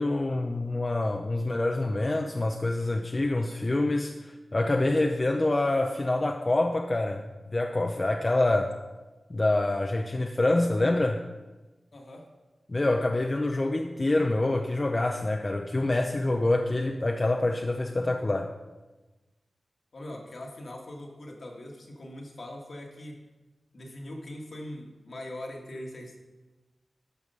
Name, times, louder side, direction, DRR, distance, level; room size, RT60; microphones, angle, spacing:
voice 1, 0.0-8.7 9.3-11.2 12.7-18.5, left 2 dB, 35° left, 4 dB, 0.6 m, -26 dB
voice 2, 11.9-12.3 19.9-23.2 23.7-26.2, left 1 dB, 65° left, 1 dB, 1.7 m, -41 dB
12.0 x 4.9 x 5.5 m, 1.2 s
wide cardioid pair, 65°, 0 cm